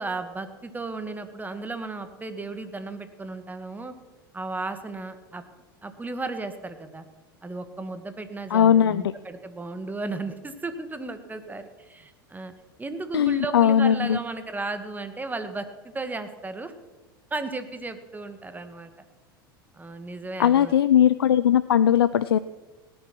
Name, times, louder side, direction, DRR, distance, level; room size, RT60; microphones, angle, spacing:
voice 1, 0.0-3.9 4.3-5.4 5.8-7.0 7.4-12.5 12.8-16.7 17.3-18.9 19.7-20.7, right 3 dB, 15° right, 9 dB, 1.8 m, -34 dB
voice 2, 8.5-9.1 13.1-14.2 20.4-22.4, left 9 dB, 85° left, 14 dB, 0.5 m, -19 dB
18.0 x 10.0 x 6.0 m, 1.2 s
hypercardioid pair, 85°, 12 cm